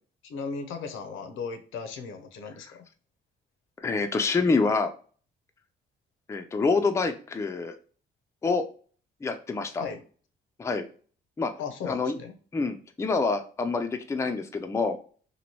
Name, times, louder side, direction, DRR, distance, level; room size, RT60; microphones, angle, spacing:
voice 1, 0.2-2.8 9.8-10.0 11.6-12.3, left 5 dB, 85° left, 7 dB, 0.6 m, -36 dB
voice 2, 3.8-4.9 6.3-7.8 8.4-8.6 9.2-9.8 10.6-10.8 11.4-11.5 11.8-12.2 12.5-15.0, left 4 dB, 15° left, 6 dB, 0.3 m, -26 dB
3.0 x 2.6 x 2.8 m, 0.42 s
cardioid pair, 90°, 20 cm